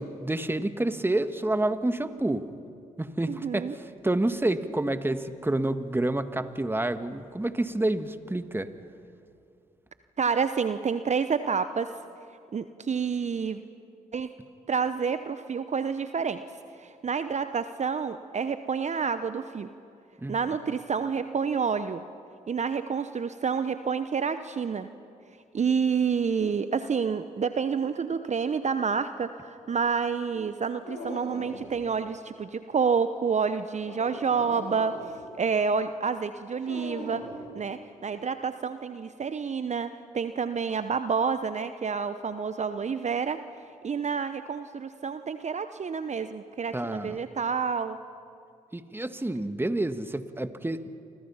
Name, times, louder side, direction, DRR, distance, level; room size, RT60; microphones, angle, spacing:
voice 1, 0.0-2.5 3.0-8.7 20.2-20.4 46.7-47.2 48.7-51.0, right 1 dB, 10° right, 10 dB, 1.6 m, -29 dB
voice 2, 3.3-3.7 10.2-11.9 12.5-13.6 14.1-14.3 14.7-16.4 16.8-19.7 20.3-22.0 22.5-24.9 25.5-35.0 35.4-37.2 37.5-43.4 43.8-48.0, right 6 dB, 40° right, 11 dB, 0.9 m, -28 dB
Dog, 30.8-31.8 33.7-35.2 36.6-37.4, left 2 dB, 75° left, 6.6 m, -40 dB
29.5 x 25.0 x 5.8 m, 2.5 s
hypercardioid pair, 45°, 18 cm